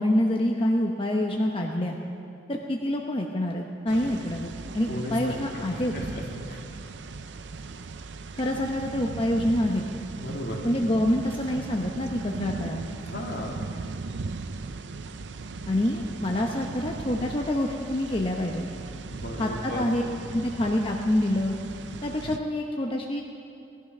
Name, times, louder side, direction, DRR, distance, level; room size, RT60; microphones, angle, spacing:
voice 1, 0.0-2.0 2.5-6.0 8.3-9.8 10.6-12.8 15.7-18.7 19.4-20.0 20.3-21.6 22.0-23.2, left 1 dB, 30° left, 1 dB, 0.9 m, -26 dB
sound 1, 3.9-22.4, right 3 dB, 90° right, 0.6 m, -38 dB
voice 2, 4.9-6.7 10.2-10.6 13.0-13.6 19.1-19.8, left 1 dB, 65° left, -1 dB, 2.6 m, -35 dB
19.0 x 12.0 x 6.0 m, 2.5 s
head